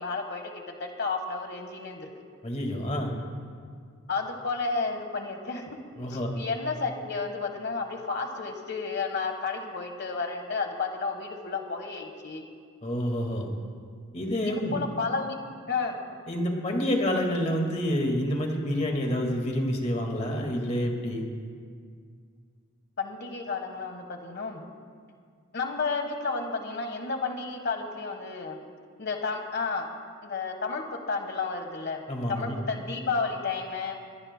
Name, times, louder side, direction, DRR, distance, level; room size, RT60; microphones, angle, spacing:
voice 1, 0.0-2.1 4.1-5.8 6.1-12.4 14.4-15.4 15.7-16.0 23.0-24.6 25.5-28.6 29.0-29.9 30.2-32.0 32.3-34.0, left 4 dB, 50° left, 5 dB, 1.3 m, -32 dB
voice 2, 2.4-3.1 6.0-6.3 12.8-13.5 14.1-14.8 16.3-21.3 32.1-32.6, equal, 30° left, 2 dB, 1.8 m, -28 dB
21.5 x 17.5 x 2.2 m, 2.1 s
head